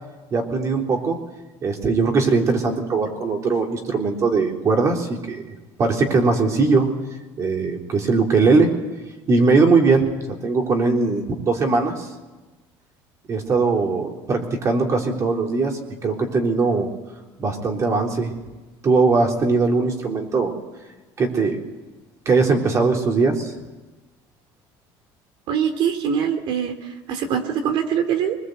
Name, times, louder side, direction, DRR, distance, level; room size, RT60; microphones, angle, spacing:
voice 1, 0.3-1.2 1.6-5.5 5.8-6.9 7.4-8.7 9.3-12.1 13.3-16.9 17.4-18.3 18.8-20.5 21.2-21.6 22.3-23.5, right 4 dB, 35° right, 2 dB, 3.7 m, -20 dB
voice 2, 25.5-26.8 27.1-28.4, right 8 dB, 60° right, 7 dB, 3.1 m, -23 dB
25.0 x 20.5 x 8.1 m, 1.2 s
cardioid pair, 140°, 9 cm